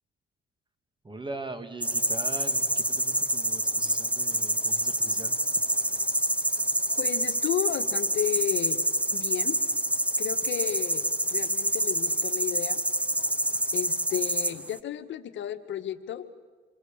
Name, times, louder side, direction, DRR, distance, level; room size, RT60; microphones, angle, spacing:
voice 1, 1.0-5.4, right 2 dB, 25° right, 9 dB, 2.2 m, -41 dB
sound 1, 1.8-14.8, right 1 dB, 5° right, 1.0 m, -27 dB
voice 2, 7.0-8.8 9.1-9.6 10.2-11.0 11.3-12.8 13.7-16.2, left 10 dB, 70° left, 9 dB, 1.5 m, -32 dB
28.0 x 22.5 x 7.3 m, 1.5 s
cardioid pair, 90°, 20 cm